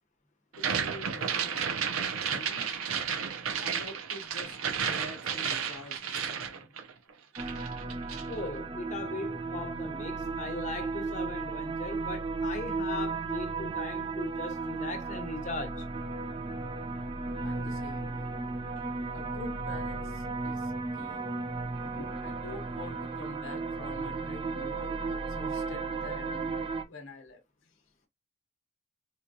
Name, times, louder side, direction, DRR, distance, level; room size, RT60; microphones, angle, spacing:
sound 1, 0.5-7.1 7.4-8.3, right 7 dB, 90° right, 0.6 m, -32 dB
voice 1, 0.6-2.7 3.3-6.7 17.4-18.4 18.8-18.9 19.1-21.5 21.8-26.5 26.8-27.8, left 2 dB, 70° left, 0.7 m, -47 dB
sound 2, 7.4-26.8, right 3 dB, 25° right, 0.4 m, -35 dB
voice 2, 8.3-15.8, left 2 dB, 35° left, 0.9 m, -39 dB
4.3 x 2.3 x 2.6 m
head